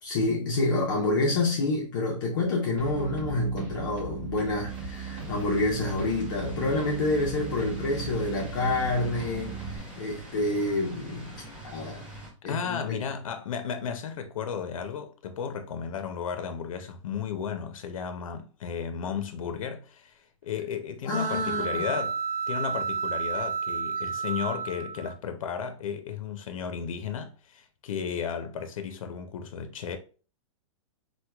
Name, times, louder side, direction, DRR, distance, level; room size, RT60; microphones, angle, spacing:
voice 1, 0.0-12.1 12.4-13.1 21.1-21.8, left 2 dB, 40° left, 0.6 m, -28 dB
sound 1, 2.8-9.8, right 6 dB, 40° right, 0.8 m, -38 dB
sound 2, 4.7-12.3, right 1 dB, 5° right, 0.4 m, -44 dB
voice 2, 12.4-22.2 22.5-30.0, left 7 dB, 90° left, 0.5 m, -34 dB
sound 3, 21.1-25.1, right 6 dB, 80° right, 0.4 m, -31 dB
4.4 x 2.2 x 2.2 m
supercardioid pair, 180°, 17 cm